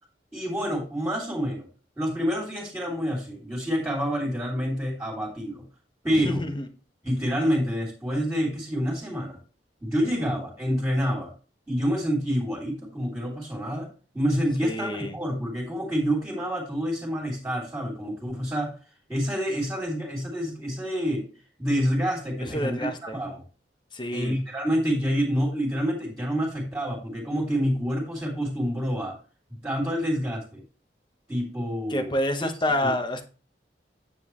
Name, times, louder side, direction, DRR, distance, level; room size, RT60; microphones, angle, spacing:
voice 1, 0.3-1.7 2.0-5.6 6.0-6.4 7.0-9.4 9.8-11.3 11.7-13.9 14.1-18.8 19.1-21.3 21.6-23.4 24.1-29.2 29.6-30.6 31.3-32.1 32.4-32.5 32.8-32.9, equal, 15° right, -4 dB, 2.9 m, -27 dB
voice 2, 6.1-6.7 10.0-10.2 14.6-15.1 22.4-23.2 23.9-24.4 31.9-33.2, left 1 dB, 25° left, 7 dB, 1.2 m, -28 dB
9.4 x 7.5 x 3.1 m, 0.36 s
head